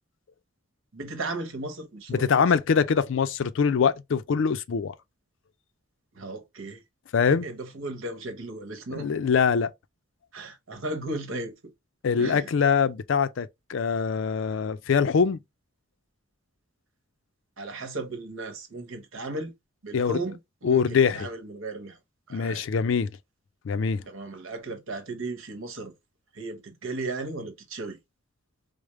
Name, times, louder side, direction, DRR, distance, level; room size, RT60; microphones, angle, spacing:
voice 1, 0.9-2.5 6.1-6.8 7.3-9.1 10.3-11.5 12.2-12.5 17.6-19.5 19.8-22.0 22.3-22.6 24.1-25.9 26.3-28.0, right 2 dB, 80° right, 1.0 m, -35 dB
voice 2, 2.1-4.9 7.1-7.5 8.9-9.7 12.0-15.4 19.9-20.2 20.6-21.3 22.3-23.1 23.6-24.0, left 6 dB, 70° left, 0.4 m, -23 dB
4.8 x 2.0 x 3.1 m
head